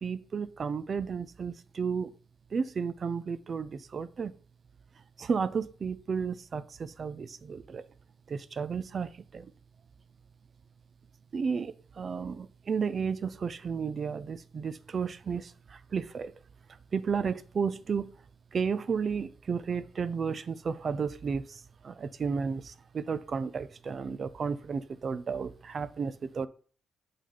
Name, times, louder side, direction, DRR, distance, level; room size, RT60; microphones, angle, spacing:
voice 1, 0.0-2.1 2.5-4.3 5.2-7.9 8.3-9.5 11.3-16.3 16.9-18.1 18.5-26.5, right 6 dB, 45° right, 0.5 m, -33 dB
8.3 x 3.9 x 3.9 m
cardioid pair, 90°, 0 cm